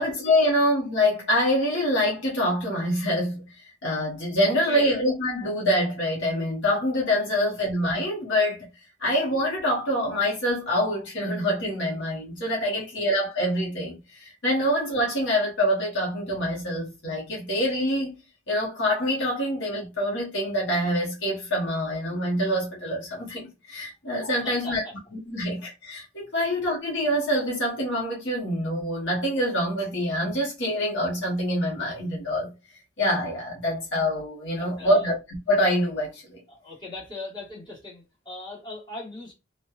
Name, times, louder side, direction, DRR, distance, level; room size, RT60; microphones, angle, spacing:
voice 1, 0.0-3.5 3.8-8.7 9.0-18.2 18.5-24.8 25.3-32.5 33.0-36.4, equal, 65° left, 0.8 m, -25 dB
voice 2, 4.7-5.0 7.3-7.4 12.9-13.0 14.6-14.7 24.3-24.9 26.2-26.4 34.6-35.1 36.5-39.3, left 2 dB, 25° left, 1.2 m, -39 dB
2.9 x 2.1 x 2.3 m
head